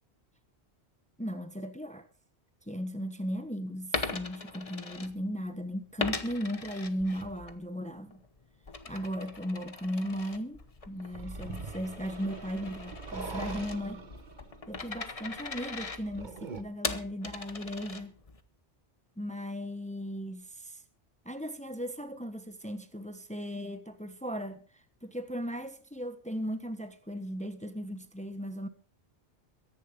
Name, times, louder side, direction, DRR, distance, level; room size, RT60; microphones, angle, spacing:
voice 1, 1.2-2.1 2.7-8.2 8.9-14.1 14.7-18.1 19.2-20.8 21.2-28.7, equal, 5° left, 1.2 m, -37 dB
Coin (dropping), 3.8-5.5 6.0-7.6 8.0-18.4, left 3 dB, 35° left, 1.1 m, -40 dB
sound 1, 11.1-16.6, right 4 dB, 45° right, 1.3 m, -43 dB
22.5 x 10.5 x 3.7 m
omnidirectional pair, 1.1 m